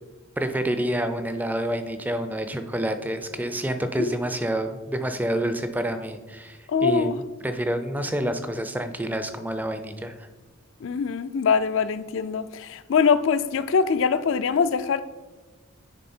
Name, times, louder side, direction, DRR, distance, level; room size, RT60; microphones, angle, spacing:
voice 1, 0.4-7.1 7.4-10.3, right 1 dB, 10° right, 0.4 m, -28 dB
voice 2, 6.7-7.2 10.8-15.0, left 6 dB, 60° left, 0.4 m, -23 dB
9.9 x 3.5 x 4.3 m
head